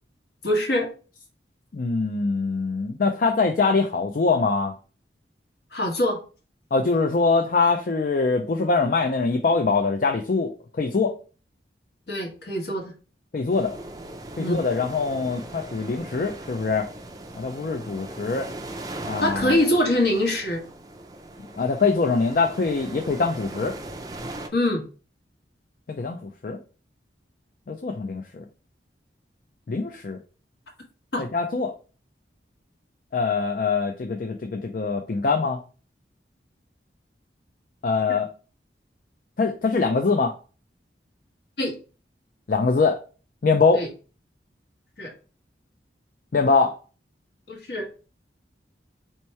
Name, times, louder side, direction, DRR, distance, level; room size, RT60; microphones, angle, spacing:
voice 1, 0.4-0.9 5.7-6.2 12.1-12.9 14.4-14.6 19.2-20.6 24.5-24.8 31.1-31.2 41.6-41.7 43.7-43.9 45.0-45.1 47.5-47.9, left 1 dB, 65° left, 1.3 m, -24 dB
voice 2, 1.7-4.7 6.7-11.1 13.3-13.7 14.4-16.9 17.3-18.5 19.0-19.5 21.6-23.8 25.9-26.6 27.7-28.4 29.7-30.2 31.2-31.7 33.1-35.6 37.8-38.3 39.4-40.3 42.5-43.0 43.4-43.8 46.3-46.7, left 4 dB, 50° left, 0.4 m, -23 dB
sound 1, 13.5-24.5, right 1 dB, 20° right, 0.4 m, -39 dB
4.4 x 2.9 x 3.1 m
head